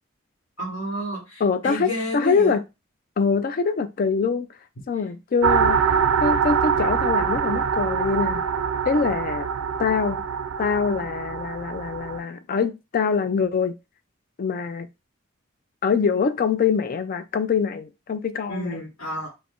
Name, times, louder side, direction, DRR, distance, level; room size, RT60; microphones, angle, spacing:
voice 1, 0.6-2.6 5.0-5.1 18.5-19.3, equal, 70° left, 1.1 m, -31 dB
voice 2, 1.4-2.6 3.2-4.5 4.9-5.8 6.2-8.4 8.9-9.5 9.8-10.2 10.6-13.8 14.4-14.9 15.8-18.8, left 5 dB, 45° left, 0.3 m, -24 dB
sound 1, 5.4-12.2, right 6 dB, 85° right, 0.4 m, -24 dB
2.4 x 2.1 x 3.5 m
head